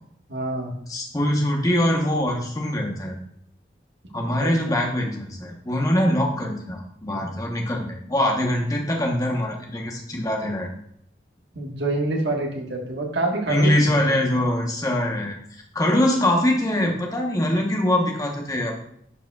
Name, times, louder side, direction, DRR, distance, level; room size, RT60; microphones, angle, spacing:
voice 1, 0.3-0.7 4.4-4.8 11.5-14.4, right 2 dB, 70° right, 1 dB, 1.4 m, -27 dB
voice 2, 0.9-3.1 4.1-10.7 13.5-18.7, left 1 dB, 20° left, 1 dB, 0.9 m, -23 dB
11.0 x 4.9 x 2.3 m, 0.69 s
head